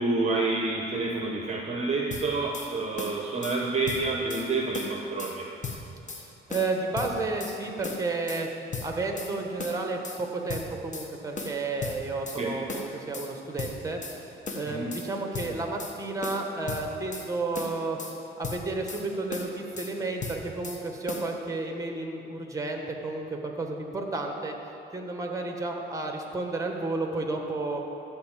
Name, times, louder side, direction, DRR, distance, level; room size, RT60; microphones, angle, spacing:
voice 1, 0.0-5.5 12.4-12.5 14.7-14.9, right 3 dB, 35° right, 1 dB, 0.9 m, -28 dB
sound 1, 2.1-2.7 3.0-3.6 3.9-4.5 4.7-5.4 5.6-6.2 6.5-7.6 7.8-8.4 8.7-9.3 9.6-10.2 10.5-11.1 11.4-12.4 12.7-13.3 13.6-14.2 14.5-15.1 15.3-16.0 16.2-17.3 17.5-18.2 18.4-19.0 19.3-19.9 20.2-20.8 21.1-21.3, left 4 dB, 40° left, 1.3 m, -37 dB
voice 2, 6.1-8.5 8.8-14.0 14.5-18.0 18.4-24.5 24.9-27.8, right 3 dB, 15° right, 3 dB, 1.4 m, -32 dB
13.5 x 4.5 x 7.5 m, 2.9 s
cardioid pair, 90°, 20 cm